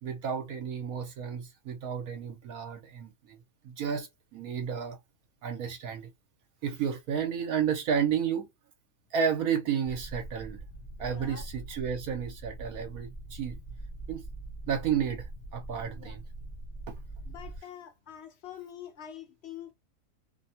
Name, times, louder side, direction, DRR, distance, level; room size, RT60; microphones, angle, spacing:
voice 1, 0.0-3.4 3.6-5.0 5.4-6.1 6.6-8.5 9.1-10.6 11.0-13.6 14.1-14.2 14.7-16.2 16.9-17.0, right 7 dB, 75° right, 1.2 m, -32 dB
sound 1, 9.8-17.6, right 2 dB, 25° left, 0.8 m, -43 dB
voice 2, 11.0-11.4 15.9-16.2 17.3-19.7, left 10 dB, 55° left, 0.8 m, -46 dB
2.7 x 2.2 x 2.7 m
omnidirectional pair, 1.6 m